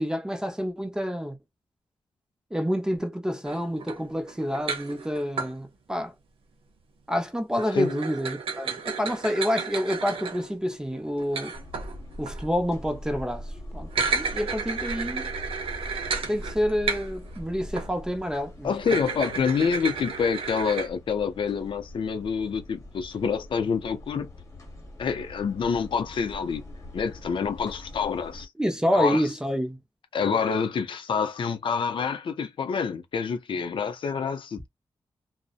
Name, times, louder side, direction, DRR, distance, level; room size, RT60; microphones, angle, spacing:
voice 1, 0.0-1.4 2.5-6.1 7.1-11.5 12.2-15.3 16.3-18.7 28.6-29.8, equal, 5° right, 0.5 m, -28 dB
sound 1, 3.5-5.5 7.5-12.5 13.8-17.4 17.8-17.9 18.8-20.9, right 5 dB, 85° right, 0.7 m, -33 dB
sound 2, 11.5-28.5, left 1 dB, 35° left, 1.0 m, -42 dB
voice 2, 18.6-24.3 25.0-26.6 26.9-28.5 28.9-29.3 30.1-34.7, left 6 dB, 65° left, 0.5 m, -27 dB
2.6 x 2.0 x 2.4 m
wide cardioid pair, 140°, 9 cm